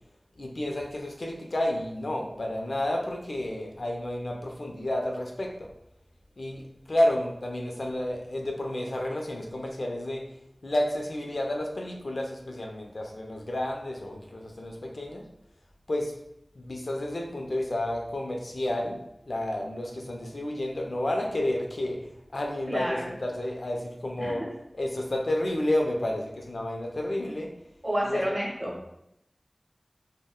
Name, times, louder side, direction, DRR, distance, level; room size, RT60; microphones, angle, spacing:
voice 1, 0.4-5.7 6.4-10.2 10.6-15.2 15.9-16.1 16.6-19.0 19.3-22.0 22.3-24.4 24.7-27.5 28.0-28.3, left 1 dB, 70° left, 0 dB, 0.4 m, -30 dB
voice 2, 22.7-23.1 24.2-24.5 27.8-28.7, equal, 35° right, -4 dB, 1.2 m, -29 dB
3.5 x 2.1 x 2.3 m, 0.79 s
wide cardioid pair, 50°, 0 cm